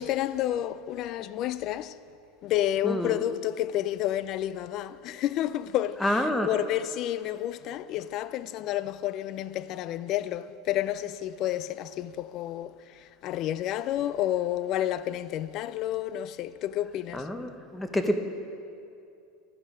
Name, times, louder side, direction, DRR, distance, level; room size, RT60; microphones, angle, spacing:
voice 1, 0.0-2.0 2.4-17.3, left 12 dB, 50° left, 0.4 m, -30 dB
voice 2, 2.8-3.2 6.0-6.5 17.1-18.2, left 1 dB, 10° left, 0.8 m, -28 dB
11.0 x 9.5 x 4.9 m
supercardioid pair, 115°, 0 cm